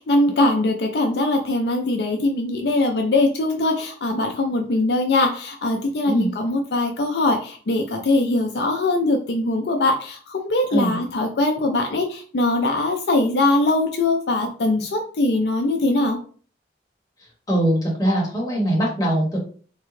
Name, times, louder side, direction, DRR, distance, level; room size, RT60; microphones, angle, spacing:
voice 1, 0.0-16.2, left 2 dB, 65° left, 3 dB, 0.4 m, -21 dB
voice 2, 17.5-19.4, right 1 dB, 20° left, -3 dB, 1.0 m, -21 dB
3.6 x 2.2 x 3.1 m, 0.42 s
head